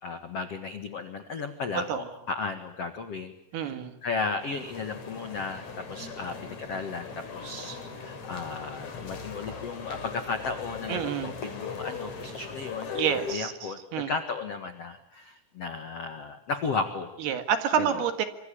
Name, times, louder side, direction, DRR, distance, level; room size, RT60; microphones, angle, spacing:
voice 1, 0.0-12.9 13.3-17.2 17.8-18.1, left 4 dB, 70° left, 8 dB, 1.5 m, -35 dB
voice 2, 3.5-3.9 10.9-11.3 12.9-14.1 17.2-18.2, right 8 dB, 65° right, 9 dB, 3.2 m, -28 dB
sound 1, 4.4-13.4, left 5 dB, 40° left, 4.2 m, -39 dB
26.5 x 25.5 x 8.5 m, 0.82 s
omnidirectional pair, 5.6 m